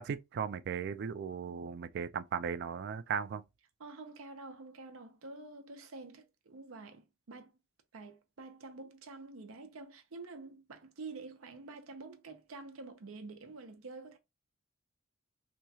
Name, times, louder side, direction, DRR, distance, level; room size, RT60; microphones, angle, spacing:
voice 1, 0.0-3.4, right 7 dB, 55° right, 0.3 m, -37 dB
voice 2, 3.8-7.5 7.9-14.2, right 3 dB, 90° right, 0.7 m, -48 dB
3.0 x 2.3 x 2.7 m
head